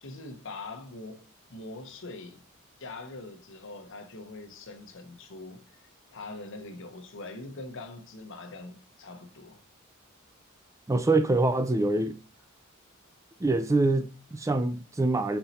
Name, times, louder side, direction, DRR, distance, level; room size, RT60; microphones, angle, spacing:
voice 1, 0.0-2.4 2.8-5.6 6.1-9.6, left 2 dB, 65° left, 1.0 m, -43 dB
voice 2, 10.9-12.2 13.4-15.4, right 2 dB, 15° right, 0.4 m, -25 dB
5.7 x 4.0 x 4.2 m
head